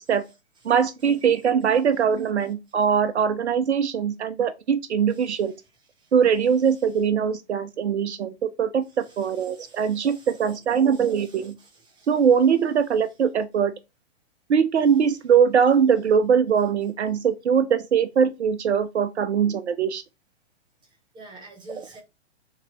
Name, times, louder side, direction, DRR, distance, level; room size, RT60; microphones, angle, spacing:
voice 1, 0.6-5.5 6.1-11.6 12.1-13.7 14.5-20.0, right 7 dB, 70° right, 0.5 m, -21 dB
voice 2, 5.1-5.6 6.0-6.1 6.7-6.8 8.9-12.2 20.8-22.0, right 2 dB, 15° right, 0.7 m, -49 dB
6.4 x 2.7 x 2.9 m
figure-of-eight pair, 115°, 35 cm